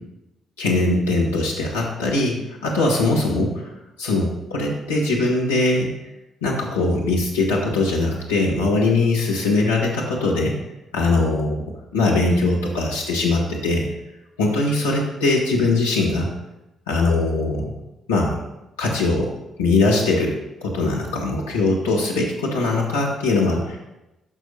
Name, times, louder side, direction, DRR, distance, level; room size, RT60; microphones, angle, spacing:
voice 1, 0.6-2.4 2.6-3.7 4.0-5.9 6.4-10.5 10.9-11.6 11.9-13.9 14.4-16.3 16.9-17.7 18.1-18.3 18.8-19.3 19.6-23.8, left 2 dB, 80° left, -3 dB, 1.3 m, -21 dB
11.0 x 6.2 x 2.7 m, 0.96 s
figure-of-eight pair, 40°, 0 cm